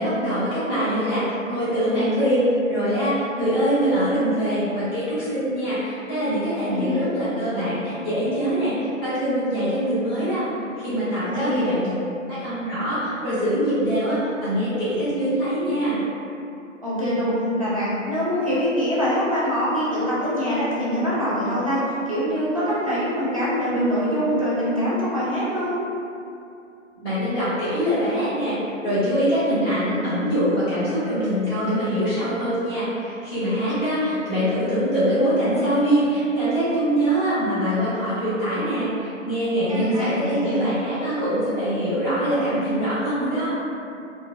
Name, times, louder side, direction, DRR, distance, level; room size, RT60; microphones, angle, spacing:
voice 1, 0.0-10.5 10.8-11.8 12.3-16.0 27.0-43.5, equal, 20° left, -13 dB, 0.8 m, -23 dB
voice 2, 6.7-7.1 11.2-11.6 16.8-25.8 33.7-33.8 39.7-40.7, equal, 30° right, -10 dB, 0.4 m, -24 dB
2.8 x 2.2 x 2.4 m, 2.6 s
figure-of-eight pair, 140°, 39 cm